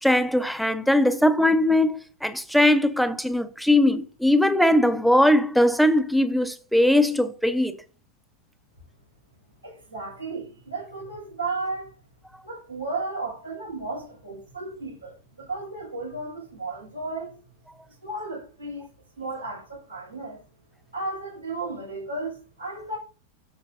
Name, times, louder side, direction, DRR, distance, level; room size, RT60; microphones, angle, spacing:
voice 1, 0.0-7.8, left 1 dB, ahead, 1.0 m, -20 dB
voice 2, 9.6-11.9 12.4-17.3 18.0-18.9 19.2-20.4 20.9-23.0, right 3 dB, 85° right, 5.9 m, -34 dB
12.0 x 7.0 x 2.8 m
figure-of-eight pair, 90°, 0 cm